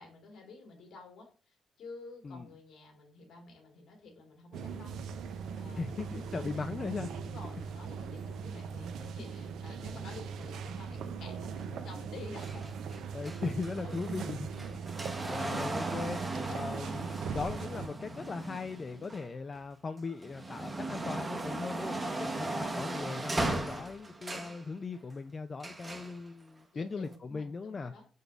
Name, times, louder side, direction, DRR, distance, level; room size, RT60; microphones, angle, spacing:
voice 1, 0.0-5.1 5.5-6.6 7.1-12.7 13.8-14.0 14.5-14.8 18.9-19.1 21.9-22.2 26.7-28.1, left 3 dB, 75° left, 1.7 m, -50 dB
sound 1, 4.5-17.9, right 6 dB, 75° right, 0.4 m, -40 dB
voice 2, 5.7-7.1 13.1-14.5 15.3-16.2 16.5-27.9, left 4 dB, 35° left, 0.3 m, -39 dB
sound 2, 12.4-19.6 20.1-24.6 25.6-26.2 27.0-27.1, right 2 dB, 20° right, 0.8 m, -37 dB
5.1 x 3.9 x 2.3 m
cardioid pair, 90°, 0 cm